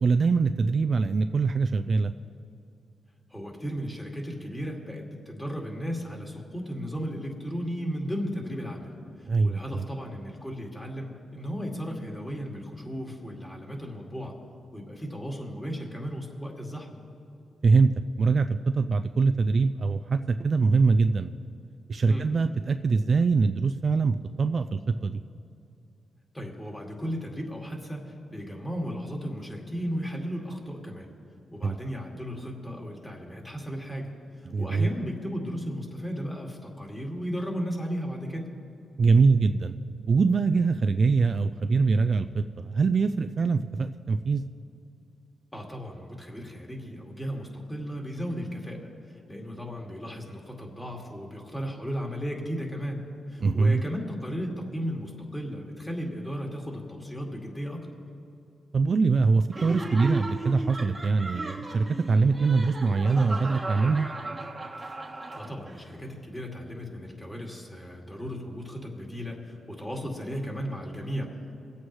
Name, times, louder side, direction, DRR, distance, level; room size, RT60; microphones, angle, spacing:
voice 1, 0.0-2.1 9.2-9.9 17.6-17.9 18.2-21.3 21.9-25.2 31.6-31.8 34.5-34.9 39.0-39.7 40.1-44.4 53.4-53.8 58.7-64.1, right 4 dB, 50° right, 9 dB, 0.4 m, -23 dB
voice 2, 3.3-14.4 14.7-17.0 22.1-22.3 26.3-31.1 31.5-34.1 34.4-38.5 45.5-48.8 49.3-53.0 53.3-57.9 65.3-71.4, equal, 15° left, 0 dB, 2.3 m, -35 dB
Laughter, 59.5-65.9, right 2 dB, 20° right, 1.2 m, -36 dB
24.0 x 8.4 x 3.2 m, 2.6 s
cardioid pair, 70°, 0 cm